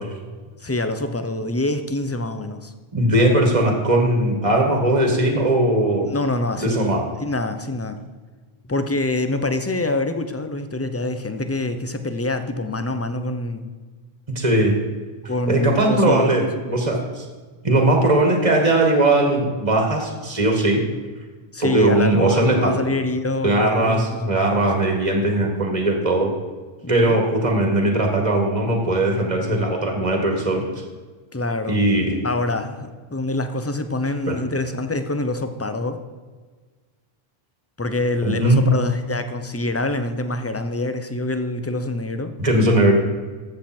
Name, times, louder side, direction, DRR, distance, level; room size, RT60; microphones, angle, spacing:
voice 1, 0.6-2.7 6.0-6.9 7.2-8.0 8.7-13.7 15.2-16.9 21.5-24.3 24.8-24.9 26.8-27.2 31.3-31.9 32.2-36.0 37.8-42.3, left 2 dB, 15° left, 9 dB, 0.6 m, -25 dB
voice 2, 2.9-6.1 6.6-7.1 14.3-14.7 15.5-17.2 17.6-20.8 21.6-22.8 23.4-26.3 26.9-30.7 31.7-32.2 34.3-34.4 38.2-38.7 42.4-42.9, right 1 dB, 35° right, 2 dB, 1.8 m, -19 dB
13.5 x 7.7 x 4.4 m, 1.4 s
omnidirectional pair, 1.1 m